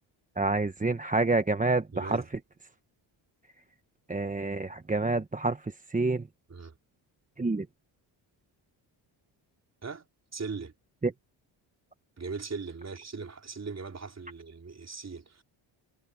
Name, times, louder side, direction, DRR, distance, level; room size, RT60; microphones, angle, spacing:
voice 1, 0.4-2.2 4.1-6.3 7.4-7.7 11.0-11.1, right 3 dB, 15° right, 1.2 m, -28 dB
voice 2, 1.9-2.3 6.5-6.7 9.8-10.1 10.3-10.7 12.2-15.4, right 4 dB, 30° right, 3.8 m, -39 dB
cardioid pair, 80°, 49 cm